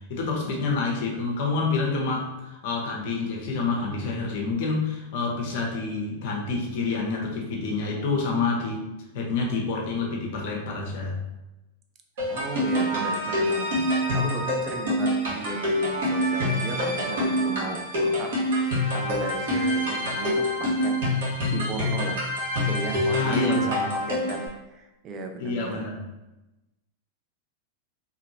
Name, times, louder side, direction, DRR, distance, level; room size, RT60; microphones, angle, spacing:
voice 1, 0.1-8.9 9.1-11.2 23.1-23.9 25.4-26.0, left 4 dB, 60° left, 0 dB, 0.8 m, -28 dB
sound 1, 12.2-24.5, left 1 dB, 70° right, 1.3 m, -26 dB
voice 2, 12.3-13.7 14.1-18.4 18.7-21.0 21.5-22.2 22.6-25.8, right 3 dB, 35° right, 4 dB, 0.5 m, -35 dB
2.8 x 2.7 x 2.7 m, 0.99 s
hypercardioid pair, 100°, 0 cm